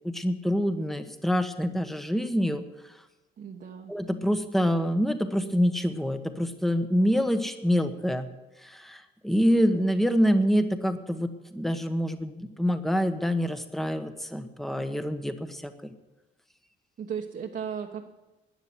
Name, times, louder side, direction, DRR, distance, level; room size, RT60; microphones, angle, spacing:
voice 1, 0.0-2.6 3.9-8.3 8.6-15.9, equal, ahead, 8 dB, 1.2 m, -26 dB
voice 2, 3.4-3.9 17.0-18.0, right 7 dB, 55° right, 0 dB, 1.3 m, -35 dB
13.5 x 9.8 x 7.8 m, 1.1 s
cardioid pair, 90°, 20 cm